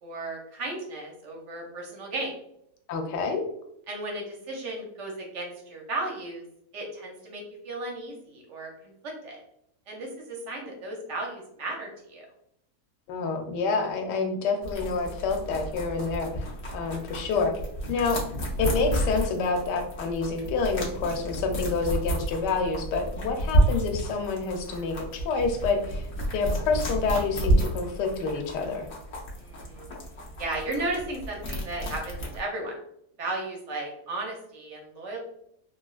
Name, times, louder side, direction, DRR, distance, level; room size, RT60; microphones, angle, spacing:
voice 1, 0.0-2.3 3.9-6.4 6.7-9.4 9.9-12.3 29.4-29.9 30.4-32.7 33.2-35.2, right 2 dB, 65° right, 0 dB, 0.7 m, -35 dB
voice 2, 2.9-3.4 13.1-17.5 17.9-18.2 18.6-28.9, left 4 dB, 85° left, 4 dB, 1.2 m, -28 dB
sound 1, 14.6-32.4, right 1 dB, 60° left, 0.7 m, -30 dB
3.2 x 2.4 x 2.3 m, 0.75 s
omnidirectional pair, 1.8 m